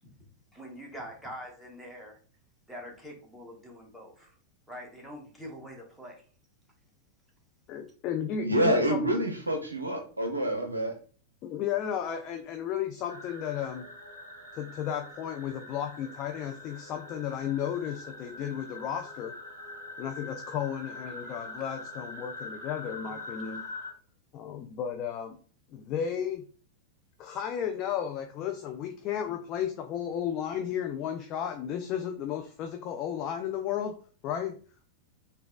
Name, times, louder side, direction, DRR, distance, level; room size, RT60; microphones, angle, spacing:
voice 1, 0.5-2.2 2.7-4.3 4.7-6.2 21.2-21.4 23.0-23.2, equal, 5° right, 1.0 m, -44 dB
voice 2, 7.7-9.0 11.4-13.9 14.5-19.3 20.0-23.7 24.3-25.4 25.7-26.4 27.2-33.9 34.2-34.6, left 9 dB, 40° left, 0.3 m, -33 dB
voice 3, 8.4-10.9, right 1 dB, 80° right, 0.5 m, -27 dB
sound 1, 13.1-23.9, left 2 dB, 80° left, 1.0 m, -44 dB
3.9 x 2.2 x 2.3 m
figure-of-eight pair, 90°, 0 cm